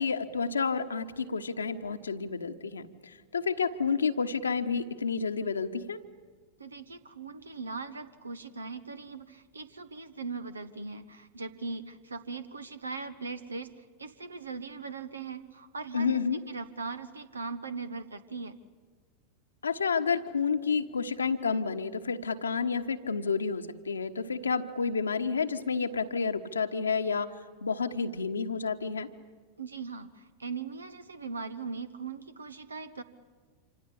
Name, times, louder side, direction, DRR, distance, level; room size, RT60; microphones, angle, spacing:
voice 1, 0.0-6.0 15.9-16.4 19.6-27.3 27.6-29.1, left 5 dB, 75° left, 6 dB, 1.2 m, -30 dB
voice 2, 6.6-18.6 29.6-33.0, right 4 dB, 75° right, 12 dB, 1.2 m, -40 dB
26.5 x 26.5 x 8.5 m, 1.5 s
figure-of-eight pair, 90°, 0 cm